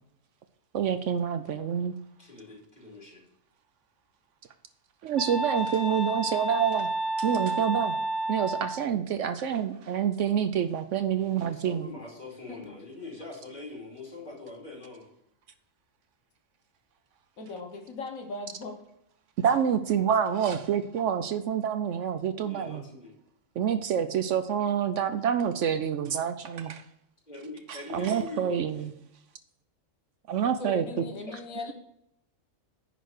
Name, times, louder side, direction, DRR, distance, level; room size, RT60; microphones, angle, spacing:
voice 1, 0.7-2.0 5.0-6.9 7.2-8.0 8.3-11.9 19.4-22.8 23.6-26.8 27.7-28.9 30.3-30.8, right 8 dB, 70° right, 10 dB, 0.9 m, -27 dB
voice 2, 2.2-3.2 11.4-15.1 22.4-23.1 27.3-28.9, left 2 dB, 30° left, -2 dB, 2.9 m, -43 dB
sound 1, 5.2-8.8, right 1 dB, ahead, 1.1 m, -30 dB
voice 3, 17.4-18.8 19.4-19.6 30.6-31.7, left 3 dB, 80° left, 5 dB, 1.6 m, -39 dB
10.0 x 4.0 x 6.5 m, 0.77 s
omnidirectional pair, 1.4 m